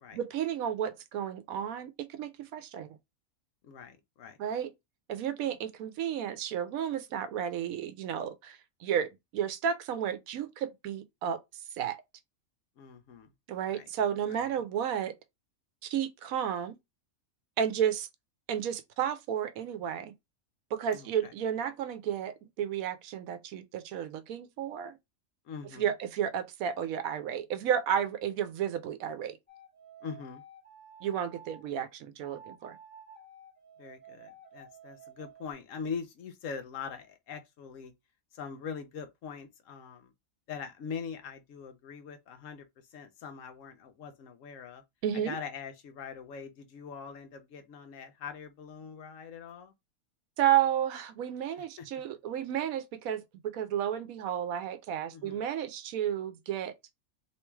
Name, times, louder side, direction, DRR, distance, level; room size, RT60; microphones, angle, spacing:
voice 1, 0.1-3.0 4.4-4.7 5.1-11.4 11.8-12.0 13.5-15.1 15.8-16.7 17.6-18.1 18.5-20.1 20.7-24.9 25.7-29.4 31.0-32.8 45.0-45.4 50.4-56.7, right 9 dB, 90° right, 1.0 m, -32 dB
voice 2, 3.6-4.4 12.8-13.3 13.7-13.9 14.3-14.6 20.9-21.3 25.5-25.9 30.0-30.4 33.8-37.9 38.3-40.1 40.5-42.6 42.9-44.8 45.1-49.7 51.6-51.9 55.1-55.4, left 6 dB, 75° left, 1.0 m, -42 dB
sound 1, 29.5-31.7 32.2-35.5, right 4 dB, 10° left, 1.2 m, -52 dB
3.4 x 2.9 x 3.1 m
omnidirectional pair, 1.4 m